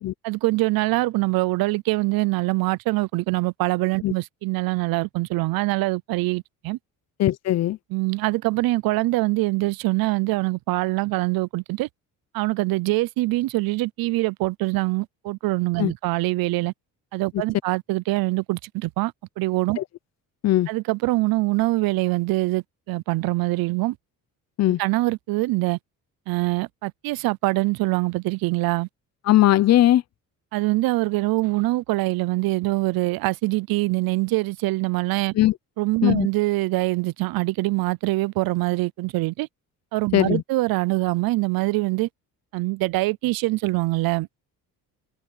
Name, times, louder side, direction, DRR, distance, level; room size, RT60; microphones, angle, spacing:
voice 1, 0.2-6.8 7.9-11.9 12.3-16.7 17.1-19.8 20.7-24.0 24.8-25.8 26.3-28.9 30.5-35.3 35.8-39.5 39.9-42.1 42.5-44.3, right 21 dB, 85° right, 0.6 m, -24 dB
voice 2, 7.2-7.8 15.8-15.9 19.8-19.9 20.4-20.7 24.6-24.8 29.3-30.0 35.3-35.5 36.0-36.3 40.1-40.4, left 14 dB, 50° left, 0.7 m, -19 dB
cardioid pair, 150°, 35 cm